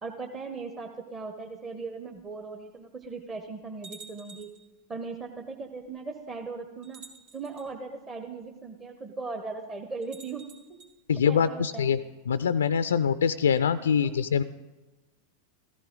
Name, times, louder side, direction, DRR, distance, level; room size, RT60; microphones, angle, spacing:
voice 1, 0.0-4.5 4.9-7.0 7.3-10.4 11.3-11.9 13.8-14.1, right 4 dB, 20° right, 3 dB, 1.0 m, -38 dB
sound 1, 2.2-2.3 3.0-3.1 3.8-4.7 5.8-5.9 6.8-7.7 10.0-10.9, right 4 dB, 50° right, 2.6 m, -49 dB
voice 2, 11.1-12.0 12.3-14.4, left 7 dB, 65° left, 14 dB, 0.4 m, -24 dB
14.5 x 14.5 x 3.8 m, 1.1 s
figure-of-eight pair, 90°, 0 cm